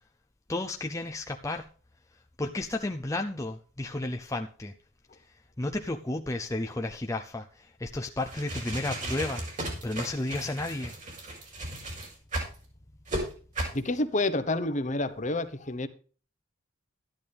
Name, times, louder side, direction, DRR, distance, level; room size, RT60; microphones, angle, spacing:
voice 1, 0.5-1.7 2.4-4.7 5.6-10.9, left 2 dB, 15° left, 0.6 m, -33 dB
sound 1, 8.2-12.6 13.1-13.2 13.6-13.8, right 1 dB, 35° right, 4.8 m, -35 dB
voice 2, 13.7-15.9, left 2 dB, 35° left, 0.9 m, -29 dB
12.5 x 11.0 x 3.4 m
head